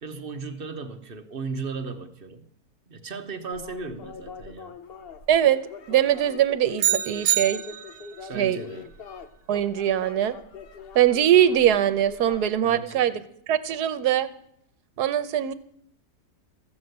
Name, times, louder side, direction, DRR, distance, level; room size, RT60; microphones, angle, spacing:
voice 1, 0.0-2.5 2.9-4.7 8.3-8.9 12.6-13.2, right 4 dB, 40° right, 7 dB, 1.0 m, -36 dB
sound 1, 3.5-12.5, left 6 dB, 50° left, 0.8 m, -43 dB
voice 2, 5.3-7.6 8.3-8.6 9.5-10.4 10.9-13.2 13.5-14.3 15.0-15.5, right 11 dB, 80° right, 13 dB, 1.3 m, -22 dB
sound 2, 6.8-8.2, right 12 dB, 60° right, 1.1 m, -25 dB
14.5 x 7.3 x 7.9 m, 0.70 s
omnidirectional pair, 1.7 m